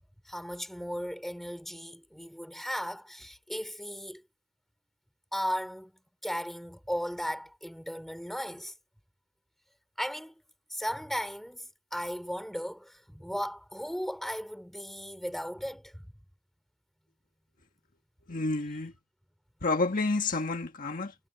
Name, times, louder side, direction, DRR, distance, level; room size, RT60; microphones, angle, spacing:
voice 1, 0.3-4.2 5.3-5.9 6.2-8.7 10.0-10.3 10.7-16.0, equal, ahead, 4.6 m, -36 dB
voice 2, 18.3-18.9 19.6-21.1, left 3 dB, 45° left, 1.5 m, -29 dB
head